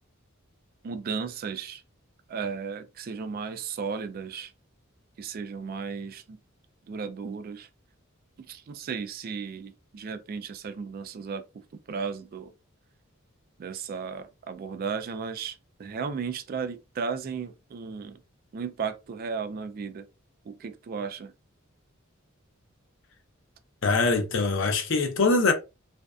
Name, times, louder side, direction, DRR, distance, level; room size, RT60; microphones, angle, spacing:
voice 1, 0.8-1.8 2.3-4.5 5.2-6.4 6.9-7.7 8.5-11.4 11.9-12.5 13.6-18.2 18.5-20.1 20.5-21.3, right 5 dB, 45° right, 0.3 m, -35 dB
voice 2, 23.8-25.5, left 3 dB, 65° left, 0.6 m, -23 dB
2.5 x 2.1 x 2.3 m
head